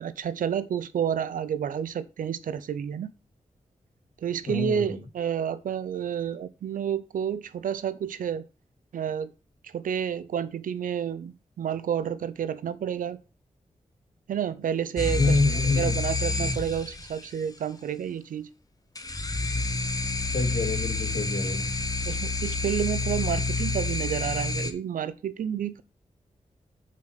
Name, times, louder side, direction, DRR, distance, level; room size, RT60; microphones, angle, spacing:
voice 1, 0.0-3.1 4.2-8.5 8.9-9.3 9.6-13.2 14.3-18.5 22.0-25.8, right 8 dB, 85° right, 0.5 m, -30 dB
voice 2, 4.5-5.0 15.2-16.0 20.3-21.7, left 3 dB, 60° left, 2.3 m, -27 dB
sound 1, 15.0-17.3 19.0-24.7, left 3 dB, 25° left, 1.0 m, -28 dB
5.7 x 4.9 x 5.6 m
cardioid pair, 55°, 14 cm